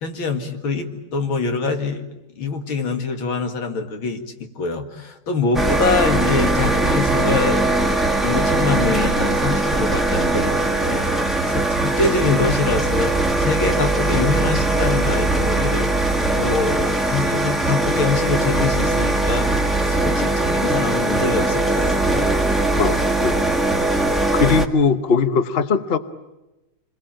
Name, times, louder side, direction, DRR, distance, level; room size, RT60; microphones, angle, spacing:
voice 1, 0.0-2.1 2.4-7.7 8.2-16.1 16.4-19.5 19.8-22.4, left 4 dB, 70° left, 5 dB, 2.9 m, -24 dB
sound 1, 5.5-24.7, right 2 dB, ahead, 1.4 m, -20 dB
voice 2, 22.8-23.5 24.3-26.0, left 5 dB, 40° left, 11 dB, 0.9 m, -20 dB
27.5 x 21.5 x 9.0 m, 1.0 s
omnidirectional pair, 2.4 m